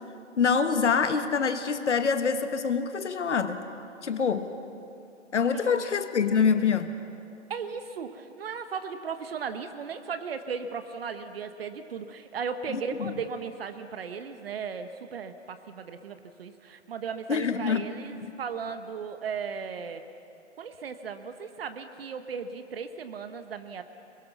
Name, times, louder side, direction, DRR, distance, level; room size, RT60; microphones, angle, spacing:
voice 1, 0.4-3.6 4.0-4.5 5.3-6.9 12.7-13.1 17.3-17.9 18.2-18.3, left 6 dB, 65° left, 9 dB, 1.5 m, -25 dB
voice 2, 7.5-20.0 20.6-23.8, right 6 dB, 50° right, 9 dB, 1.2 m, -36 dB
23.0 x 22.5 x 5.9 m, 2.7 s
figure-of-eight pair, 135°, 37 cm